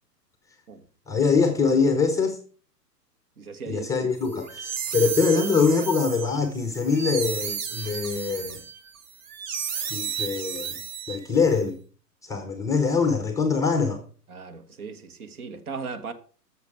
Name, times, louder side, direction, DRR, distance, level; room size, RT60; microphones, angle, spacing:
voice 1, 1.1-2.4 3.7-8.6 9.9-10.8 11.1-11.8 12.2-14.0, left 5 dB, 5° left, 0.7 m, -23 dB
voice 2, 3.4-3.9 14.3-16.1, right 5 dB, 60° right, 1.7 m, -37 dB
sound 1, 4.3-11.5, right 7 dB, 30° right, 0.9 m, -33 dB
13.5 x 6.6 x 4.7 m
figure-of-eight pair, 115°, 49 cm